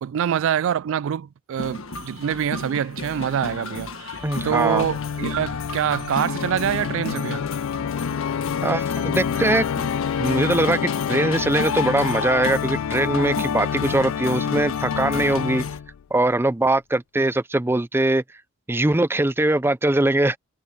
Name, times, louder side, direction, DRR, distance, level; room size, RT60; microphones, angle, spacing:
voice 1, 0.0-7.4, right 9 dB, 65° right, 0.3 m, -25 dB
sound 1, 1.6-15.8, left 3 dB, 70° left, 1.6 m, -33 dB
Organ, 4.2-16.0, left 7 dB, 85° left, 0.4 m, -27 dB
voice 2, 4.2-4.9 8.6-9.7 10.2-15.6 16.1-18.2 18.7-20.4, right 2 dB, 10° right, 0.5 m, -21 dB
head